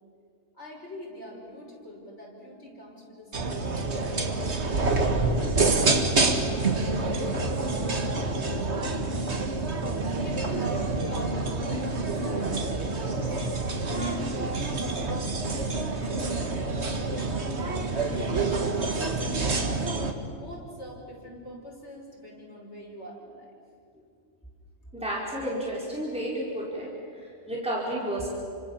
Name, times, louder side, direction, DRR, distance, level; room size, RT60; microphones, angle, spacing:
voice 1, 0.5-5.4 6.0-9.6 10.1-14.0 14.5-19.8 20.3-23.5, equal, 65° left, -2 dB, 6.3 m, -45 dB
sound 1, 3.3-20.1, right 3 dB, 60° right, 2.1 m, -27 dB
voice 2, 24.9-26.9 27.1-28.3, right 1 dB, 5° right, -5 dB, 4.9 m, -31 dB
29.5 x 25.5 x 7.3 m, 2.3 s
omnidirectional pair, 1.3 m